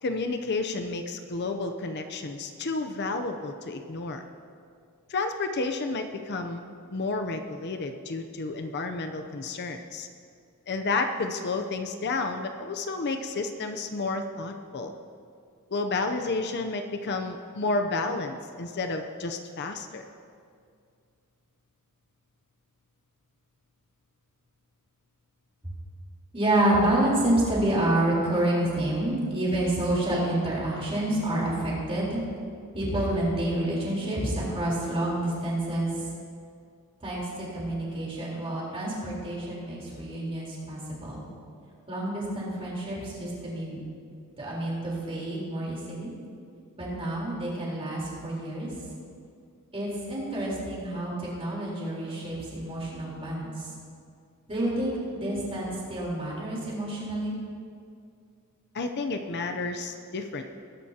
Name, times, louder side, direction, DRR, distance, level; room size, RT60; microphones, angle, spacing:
voice 1, 0.0-4.2 5.1-6.6 6.9-10.1 10.7-14.9 15.7-20.0 58.7-60.4, left 3 dB, 50° left, 6 dB, 0.6 m, -31 dB
voice 2, 26.3-32.2 32.7-35.9 37.0-41.2 41.9-43.8 44.4-46.1 46.8-48.7 49.7-53.5 54.5-57.4, right 1 dB, 25° right, -5 dB, 3.8 m, -28 dB
21.0 x 11.0 x 2.8 m, 2.3 s
head